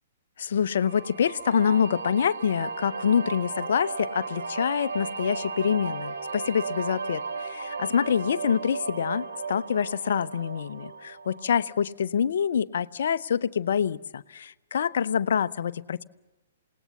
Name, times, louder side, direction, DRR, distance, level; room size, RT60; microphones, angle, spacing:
voice 1, 0.4-16.0, left 7 dB, 60° left, 14 dB, 0.7 m, -26 dB
sound 1, 0.7-11.8, right 4 dB, 65° right, 2.9 m, -35 dB
28.5 x 18.5 x 7.2 m, 1.1 s
figure-of-eight pair, 120°, 0 cm